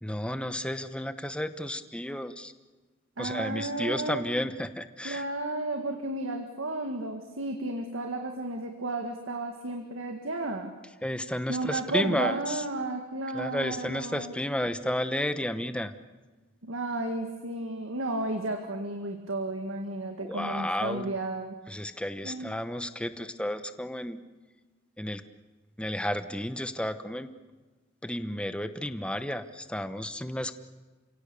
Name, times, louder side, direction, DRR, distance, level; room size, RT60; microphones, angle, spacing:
voice 1, 0.0-2.5 3.2-5.3 11.0-12.6 13.3-15.9 20.2-21.1 21.7-24.2 25.0-25.2 25.8-27.3 28.0-30.5, left 1 dB, 5° left, 10 dB, 1.0 m, -32 dB
voice 2, 3.2-4.3 5.0-10.7 11.5-14.3 16.6-21.6 22.2-22.5, right 2 dB, 75° right, 4 dB, 1.9 m, -33 dB
30.0 x 17.0 x 7.0 m, 1.3 s
head